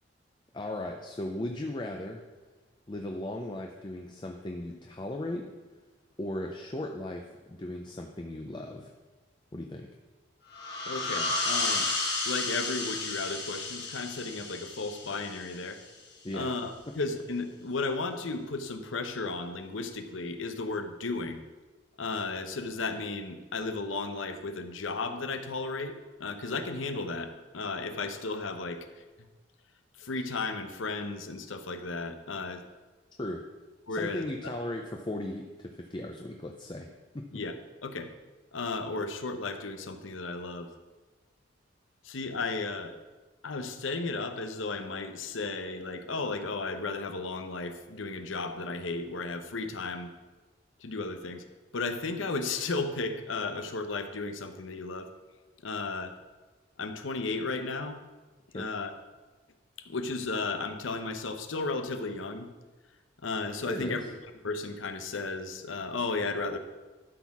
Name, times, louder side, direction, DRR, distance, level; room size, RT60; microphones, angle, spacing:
voice 1, 0.5-2.2 2.9-5.5 6.2-8.9 9.5-9.9 16.2-16.5 33.2-33.4 33.9-36.9 58.5-58.6 63.7-64.0, left 1 dB, 25° left, 2 dB, 0.6 m, -37 dB
sound 1, 10.5-15.9, left 3 dB, 55° left, 2.1 m, -32 dB
voice 2, 10.8-11.9 12.2-15.8 16.3-21.5 22.0-25.9 26.2-29.3 30.0-32.6 33.9-34.6 37.3-37.6 37.8-38.1 38.5-40.7 42.0-42.9 43.4-50.1 50.8-51.5 51.7-55.1 55.6-56.2 56.8-58.0 58.5-58.9 59.8-62.5 63.2-64.0 64.4-66.6, left 3 dB, 85° left, 8 dB, 0.8 m, -34 dB
12.0 x 4.4 x 6.0 m, 1.3 s
head